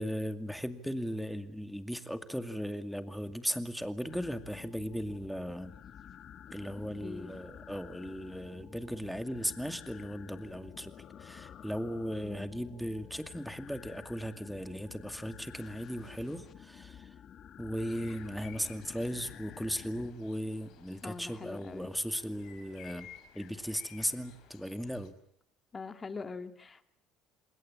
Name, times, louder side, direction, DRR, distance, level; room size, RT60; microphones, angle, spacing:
voice 1, 0.0-5.7 6.5-10.9 11.2-17.1 17.6-23.1 23.3-25.1, equal, ahead, 9 dB, 2.3 m, -37 dB
sound 1, 4.1-20.1, left 9 dB, 45° left, 1.6 m, -51 dB
voice 2, 6.8-7.3 12.2-12.7 21.0-22.0 25.7-26.8, left 4 dB, 25° left, 8 dB, 2.3 m, -43 dB
sound 2, 17.9-25.1, left 10 dB, 65° left, 4.9 m, -56 dB
28.0 x 20.5 x 8.6 m, 0.65 s
cardioid pair, 115°, 0 cm